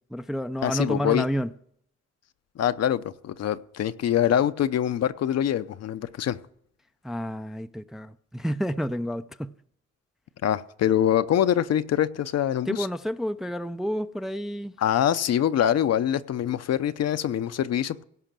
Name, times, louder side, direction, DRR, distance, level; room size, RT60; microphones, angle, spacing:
voice 1, 0.1-1.5 7.0-9.5 12.7-14.7, equal, ahead, 0.4 m, -30 dB
voice 2, 0.6-1.2 2.6-6.4 10.4-12.8 14.8-18.0, left 10 dB, 55° left, 0.7 m, -24 dB
17.0 x 5.7 x 7.5 m
cardioid pair, 90°, 30 cm